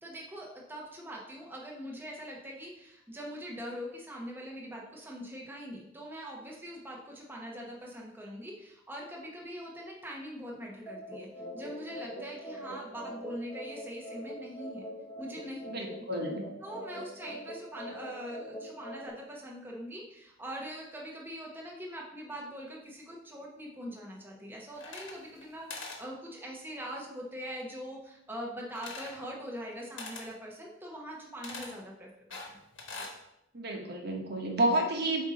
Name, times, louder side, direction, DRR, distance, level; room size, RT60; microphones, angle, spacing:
voice 1, 0.0-14.9 15.2-15.6 16.6-32.6 32.9-33.0, equal, 10° right, -3 dB, 1.0 m, -42 dB
sound 1, 10.9-19.1, equal, 15° left, 1.1 m, -43 dB
voice 2, 15.6-16.4 33.5-35.2, right 1 dB, 55° right, 1 dB, 1.1 m, -30 dB
sound 2, 24.7-25.4 25.7-26.0 28.8-29.2 30.0-30.3 31.4-31.7 32.3-33.2, left 3 dB, 80° left, 1.3 m, -42 dB
8.0 x 2.8 x 5.0 m, 0.82 s
head